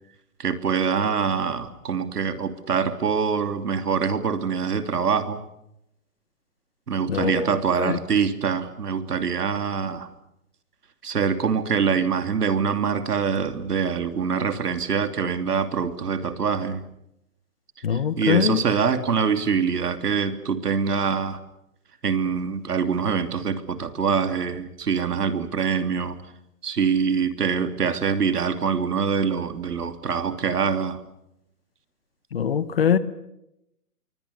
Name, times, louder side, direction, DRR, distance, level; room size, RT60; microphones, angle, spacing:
voice 1, 0.4-5.4 6.9-10.1 11.0-16.8 17.9-21.4 22.0-26.2 26.6-31.0, right 6 dB, 80° right, 3.0 m, -24 dB
voice 2, 7.1-7.5 7.8-8.0 17.8-18.6 32.3-33.0, left 8 dB, 40° left, 1.2 m, -22 dB
27.5 x 23.5 x 7.0 m
hypercardioid pair, 175°, 46 cm